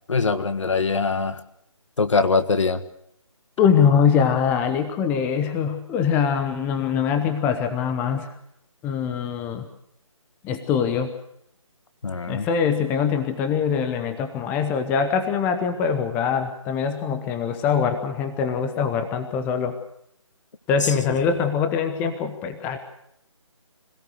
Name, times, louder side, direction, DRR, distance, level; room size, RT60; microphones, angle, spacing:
voice 1, 0.1-1.4 2.0-2.8 12.0-12.5 20.8-20.9, left 4 dB, 60° left, 10 dB, 1.7 m, -22 dB
voice 2, 3.6-8.3 8.8-9.7 10.4-11.1 12.3-19.8 20.7-22.8, left 7 dB, 10° left, 8 dB, 0.9 m, -23 dB
25.5 x 17.0 x 6.5 m, 0.75 s
figure-of-eight pair, 155°, 17 cm